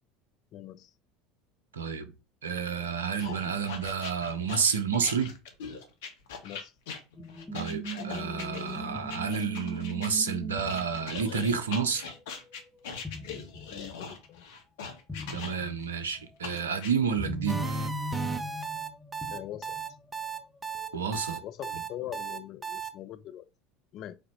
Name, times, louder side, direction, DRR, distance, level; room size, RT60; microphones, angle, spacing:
voice 1, 0.5-0.9 6.4-6.7 13.7-14.4 19.3-19.8 21.4-23.5 23.9-24.2, left 12 dB, 45° left, 0.4 m, -42 dB
voice 2, 1.7-2.1 2.4-5.3 7.5-12.1 15.3-17.7 20.9-21.4, right 6 dB, 75° right, 0.5 m, -30 dB
sound 1, 3.2-10.1 10.7-15.8 16.4-16.9, left 5 dB, 65° left, 0.8 m, -41 dB
sound 2, 7.2-12.8 13.0-13.8 14.1-14.2 15.1-15.8 16.6-20.0 20.7-21.2, equal, 10° left, 0.8 m, -39 dB
sound 3, 17.5-22.9, right 5 dB, 15° right, 0.6 m, -35 dB
4.9 x 2.1 x 4.2 m
figure-of-eight pair, 70°, 0 cm